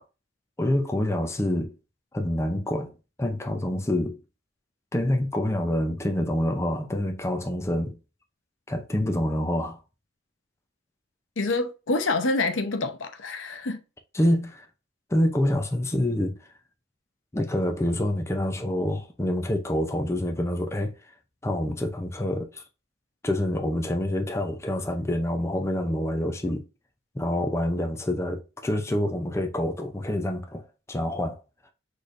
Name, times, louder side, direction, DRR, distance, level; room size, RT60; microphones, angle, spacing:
voice 1, 0.6-1.7 2.1-2.9 3.2-4.2 4.9-8.0 8.7-9.8 14.1-14.7 15.1-16.4 17.3-20.9 21.4-22.6 23.2-26.6 27.1-30.6 30.9-31.4, left 1 dB, 15° left, 0.6 m, -26 dB
voice 2, 11.4-13.8, left 2 dB, 80° left, 0.8 m, -27 dB
6.3 x 3.3 x 2.5 m
head